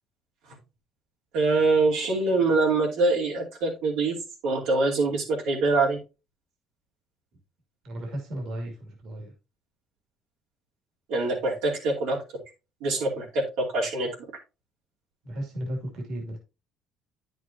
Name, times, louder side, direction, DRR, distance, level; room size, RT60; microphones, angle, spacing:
voice 1, 1.3-4.2 4.4-6.0 11.1-12.2 12.8-14.1, right 3 dB, 85° right, -3 dB, 2.6 m, -24 dB
voice 2, 7.8-9.3 15.2-16.4, right 1 dB, 65° right, 2 dB, 2.5 m, -34 dB
9.5 x 6.5 x 2.7 m, 0.29 s
supercardioid pair, 85°, 0 cm